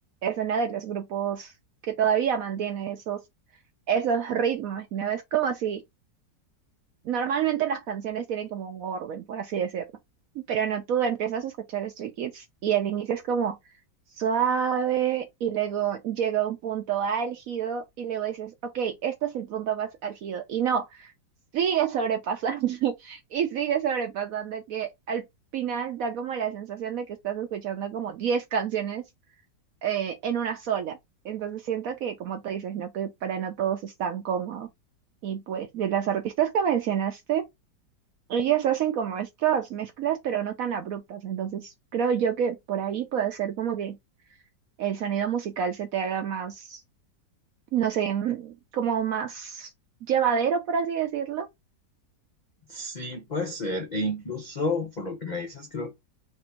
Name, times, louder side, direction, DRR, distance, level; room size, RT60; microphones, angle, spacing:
voice 1, 0.2-1.5 1.8-3.2 3.9-5.8 7.0-9.8 10.5-13.6 14.2-21.1 21.5-25.2 25.5-29.0 29.8-31.0 31.2-34.7 35.2-37.4 38.3-44.0 44.8-46.8 47.7-49.7 50.1-51.5, right 8 dB, 70° right, 0.8 m, -28 dB
voice 2, 52.7-56.0, left 2 dB, 55° left, 0.4 m, -31 dB
3.3 x 2.6 x 4.3 m
omnidirectional pair, 1.9 m